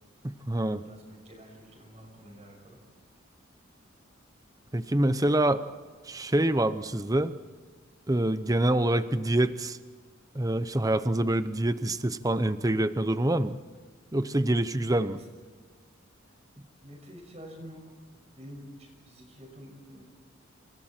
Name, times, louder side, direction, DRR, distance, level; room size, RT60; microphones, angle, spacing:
voice 1, 0.2-0.8 4.7-5.6 6.1-7.3 8.1-9.8 10.3-13.6 14.1-15.2, right 1 dB, 20° right, 12 dB, 0.8 m, -26 dB
voice 2, 0.8-2.8 14.9-15.3 16.8-17.8 18.1-20.0, equal, 35° right, 1 dB, 6.0 m, -48 dB
29.5 x 27.5 x 4.5 m, 1.5 s
head